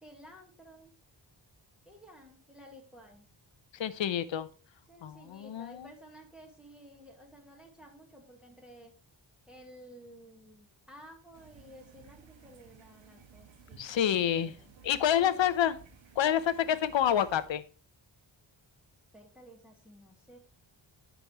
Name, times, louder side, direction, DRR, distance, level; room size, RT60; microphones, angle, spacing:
voice 1, 0.0-0.9 1.8-3.3 4.9-8.9 9.5-14.7 15.1-15.6 16.6-16.8 19.1-20.4, equal, ahead, 0 dB, 1.6 m, -53 dB
voice 2, 3.7-4.5 5.0-5.9 13.8-14.5 14.8-15.8 16.2-17.6, left 10 dB, 70° left, 14 dB, 0.8 m, -28 dB
sound 1, 11.3-17.5, right 6 dB, 75° right, 1.3 m, -56 dB
14.0 x 5.2 x 3.0 m, 0.39 s
wide cardioid pair, 130°, 46 cm